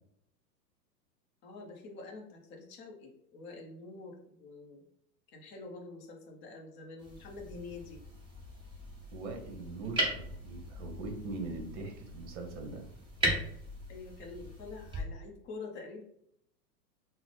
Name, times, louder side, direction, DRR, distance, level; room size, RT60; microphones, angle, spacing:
voice 1, 1.4-4.8 5.3-8.0 13.9-16.0, left 3 dB, 25° left, 1 dB, 0.6 m, -46 dB
sound 1, 7.0-15.0, right 1 dB, 10° right, 0.7 m, -38 dB
voice 2, 9.1-12.8, right 3 dB, 45° right, 3 dB, 0.9 m, -41 dB
3.7 x 2.1 x 3.1 m, 0.71 s
hypercardioid pair, 115°, 50 cm